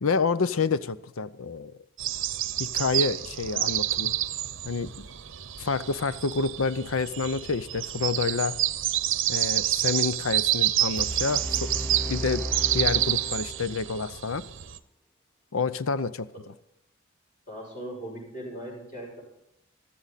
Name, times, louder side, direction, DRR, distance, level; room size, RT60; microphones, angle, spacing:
voice 1, 0.0-1.7 2.6-4.1 4.6-4.9 5.6-8.6 9.3-12.4 12.7-14.4 15.5-16.3, left 4 dB, 85° left, 0.7 m, -28 dB
sound 1, 2.0-14.8, right 13 dB, 65° right, 0.7 m, -28 dB
sound 2, 11.0-14.0, equal, 5° left, 0.4 m, -35 dB
voice 2, 17.5-19.2, right 1 dB, 40° left, 6.9 m, -39 dB
15.5 x 13.0 x 4.1 m
head